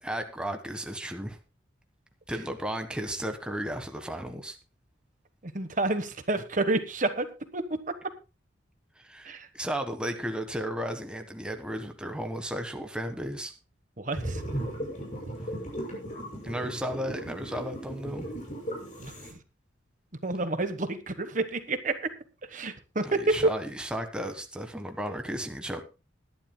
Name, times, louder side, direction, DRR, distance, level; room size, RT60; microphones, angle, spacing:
voice 1, 0.0-1.4 2.3-4.6 9.0-13.5 16.4-18.2 23.0-25.8, equal, 5° right, 5 dB, 1.3 m, -34 dB
voice 2, 5.4-7.3 7.5-7.6 9.2-9.5 14.0-14.4 19.0-19.1 20.2-22.0 22.5-23.3, right 2 dB, 40° right, 9 dB, 1.2 m, -29 dB
sound 1, 14.1-19.3, right 1 dB, 40° left, 6.6 m, -36 dB
21.0 x 11.0 x 2.2 m, 0.31 s
head